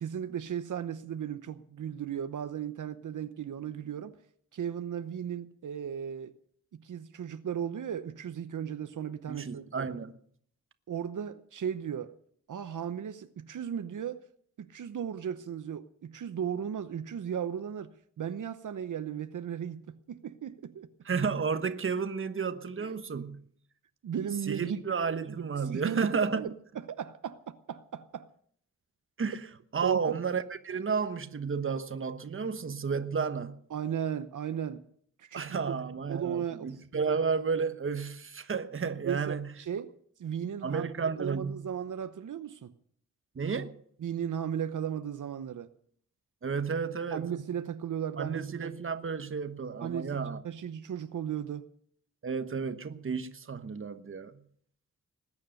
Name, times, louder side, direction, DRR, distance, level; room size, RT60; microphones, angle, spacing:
voice 1, 0.0-4.1 4.5-6.4 6.7-9.9 10.9-12.1 12.5-14.2 14.6-20.9 22.8-23.0 24.0-24.8 25.7-28.3 29.8-30.2 33.7-34.8 35.2-35.8 36.1-36.8 39.0-39.9 40.2-40.9 41.2-42.7 44.0-45.7 47.1-48.7 49.8-50.2 50.4-51.7, right 8 dB, 75° right, 0.9 m, -36 dB
voice 2, 9.3-10.1 21.0-23.4 24.5-26.5 29.2-29.4 29.7-33.6 35.3-39.5 40.6-41.7 43.3-43.8 46.4-47.3 48.2-50.4 52.2-54.4, right 5 dB, 40° right, 1.1 m, -32 dB
20.0 x 9.6 x 6.4 m
wide cardioid pair, 115°, 31 cm